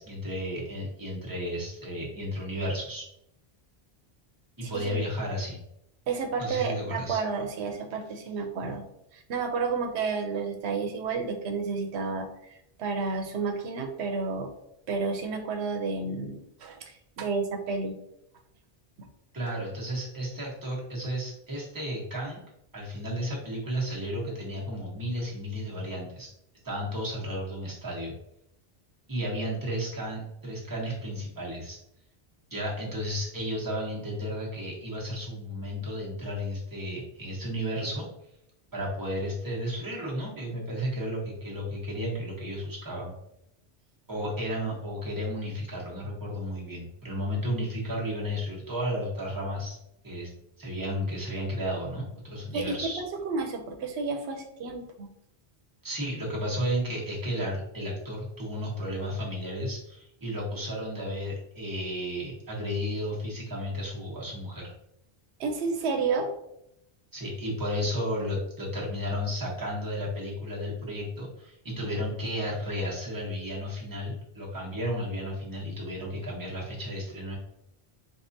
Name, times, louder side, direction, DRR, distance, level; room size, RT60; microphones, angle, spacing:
voice 1, 0.0-3.0 4.6-5.6 6.4-7.2 19.3-22.4 22.7-26.3 26.6-28.1 29.1-31.8 32.5-38.1 38.7-43.1 44.1-49.8 50.0-50.3 50.6-53.0 55.8-64.7 67.1-77.4, equal, 20° right, -5 dB, 1.0 m, -33 dB
voice 2, 4.6-5.0 6.1-8.8 9.1-12.3 12.8-14.5 14.9-18.0 52.5-52.9 53.3-55.1 65.4-66.3, right 4 dB, 90° right, 4 dB, 0.9 m, -31 dB
4.6 x 2.4 x 2.7 m, 0.79 s
omnidirectional pair, 1.1 m